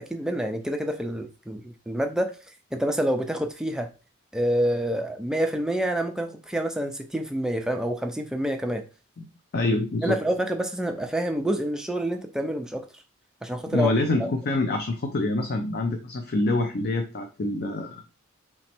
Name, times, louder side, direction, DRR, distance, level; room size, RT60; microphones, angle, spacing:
voice 1, 0.0-2.3 2.7-3.9 4.3-8.8 10.0-12.9 13.4-13.9 14.2-14.3, right 1 dB, 5° right, 4 dB, 0.4 m, -27 dB
voice 2, 9.5-10.2 13.7-18.1, left 2 dB, 50° left, 4 dB, 0.5 m, -26 dB
3.4 x 3.1 x 4.3 m, 0.32 s
head